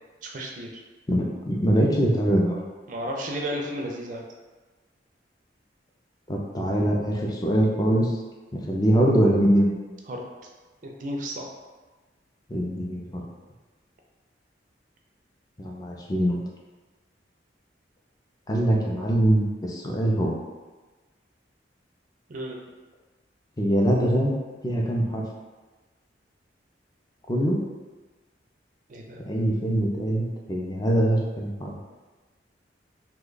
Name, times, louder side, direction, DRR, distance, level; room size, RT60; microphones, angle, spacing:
voice 1, 0.2-0.8 2.9-4.2 10.1-10.2 10.8-11.5 22.3-22.6 28.9-29.2, equal, 45° right, 0 dB, 0.4 m, -33 dB
voice 2, 1.1-2.6 6.3-8.1 8.5-9.7 12.5-13.2 15.6-16.4 18.5-20.4 23.6-24.4 24.6-25.2 27.3-27.6 29.3-31.8, right 1 dB, 20° left, -2 dB, 0.4 m, -23 dB
2.9 x 2.2 x 3.8 m, 1.3 s
head